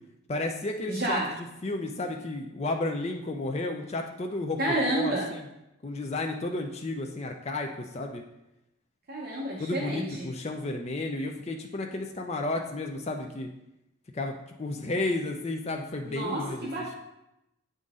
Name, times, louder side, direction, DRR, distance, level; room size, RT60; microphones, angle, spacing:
voice 1, 0.3-1.2 1.6-4.6 4.9-5.5 5.8-8.2 9.6-13.5 14.1-16.7, left 2 dB, 30° left, 3 dB, 0.4 m, -32 dB
voice 2, 0.9-1.3 4.6-5.3 9.1-10.3 16.0-16.9, right 1 dB, 45° right, -3 dB, 0.9 m, -30 dB
8.6 x 3.9 x 3.7 m, 0.89 s
head